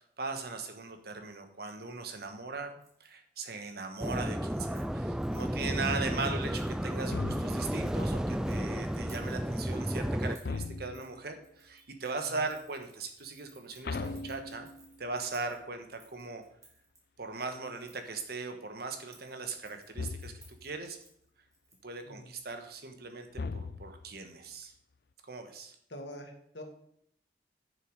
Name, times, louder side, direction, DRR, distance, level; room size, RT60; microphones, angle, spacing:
voice 1, 0.0-2.7 3.0-14.7 15.0-16.4 17.2-21.0 21.8-24.7 25.3-25.7, right 3 dB, 60° right, 6 dB, 1.4 m, -39 dB
Keys jangling, 2.8-3.1 3.5-3.7 4.0-5.6 6.4-6.8 7.6-8.6 8.9-9.6 10.3-10.6 10.9-11.1 11.4-17.0 17.8-18.2 19.0-22.0 22.3-22.4, right 2 dB, 20° right, 2.7 m, -61 dB
sound 1, 4.0-10.4, equal, 5° right, 0.3 m, -32 dB
sound 2, 7.1-7.9 10.4-11.2 13.8-15.0 20.0-20.6 23.3-24.2, left 3 dB, 60° left, 0.6 m, -38 dB
voice 2, 25.9-26.6, equal, 85° left, 3 dB, 2.0 m, -45 dB
10.5 x 6.9 x 4.8 m, 0.71 s
head